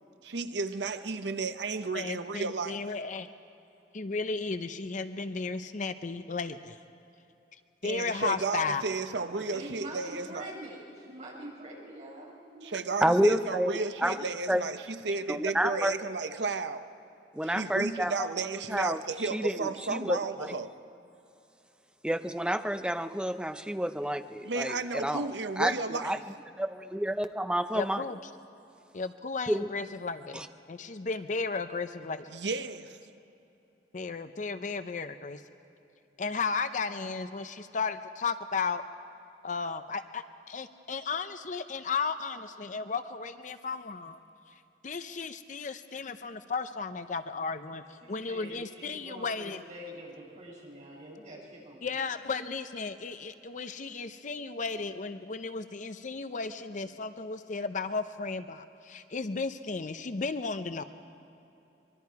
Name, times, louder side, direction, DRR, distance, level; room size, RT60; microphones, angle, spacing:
voice 1, 0.2-2.8 7.8-10.5 12.6-16.9 17.4-20.7 24.4-26.2 32.3-33.0, right 4 dB, 80° right, 0.9 m, -33 dB
voice 2, 1.9-3.3 3.9-6.8 7.8-8.8 27.7-28.2 28.9-32.3 33.9-35.4 36.2-38.8 39.4-44.2 44.8-49.6 51.8-60.8, left 4 dB, 45° left, 0.6 m, -34 dB
voice 3, 9.3-13.0 48.0-51.8, right 1 dB, 40° right, 6.8 m, -45 dB
voice 4, 13.0-13.7 14.0-14.2 14.5-14.6 15.3-15.9 17.3-18.3 18.7-20.2 22.0-25.3 25.6-25.7 26.0-26.2 26.6-28.0 29.5-29.7 30.3-30.5, right 1 dB, 5° right, 0.6 m, -29 dB
24.0 x 23.0 x 4.7 m
head